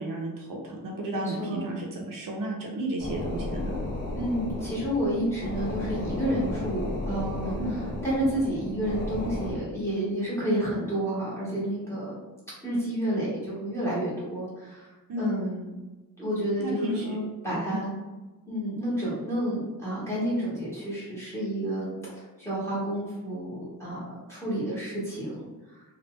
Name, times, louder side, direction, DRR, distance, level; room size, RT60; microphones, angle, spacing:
voice 1, 0.0-3.8 7.6-7.7 15.1-15.3 16.6-17.2 17.5-17.8, right 1 dB, 65° right, -1 dB, 0.7 m, -33 dB
voice 2, 1.1-1.7 4.1-12.2 12.6-14.9 15.2-15.7 16.2-17.9 18.5-25.8, right 1 dB, 5° left, -8 dB, 1.5 m, -30 dB
sound 1, 3.0-9.5, left 1 dB, 30° left, 0.9 m, -33 dB
3.1 x 2.4 x 3.1 m, 1.1 s
wide cardioid pair, 150°, 36 cm